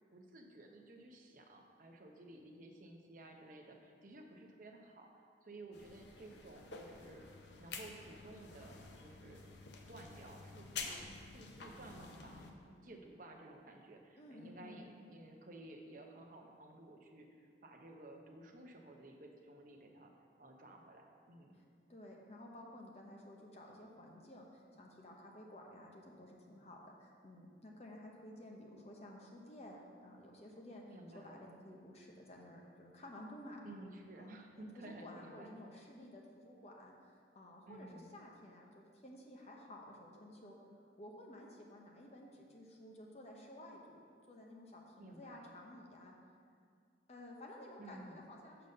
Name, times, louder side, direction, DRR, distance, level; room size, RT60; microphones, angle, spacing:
voice 1, 0.1-7.3 7.6-9.4 9.9-20.1 20.4-21.6 30.9-31.4 33.6-35.5 37.7-38.2 45.0-45.5 47.8-48.2, right 1 dB, 45° right, 2 dB, 0.7 m, -54 dB
sound 1, 5.7-12.5, left 4 dB, 80° left, 0.7 m, -50 dB
voice 2, 14.2-15.0 21.5-21.6 21.9-30.8 31.1-33.6 34.2-40.5 41.0-44.0 44.3-46.1 47.1-48.7, left 1 dB, 35° left, 0 dB, 0.9 m, -54 dB
6.7 x 4.0 x 6.5 m, 2.2 s
head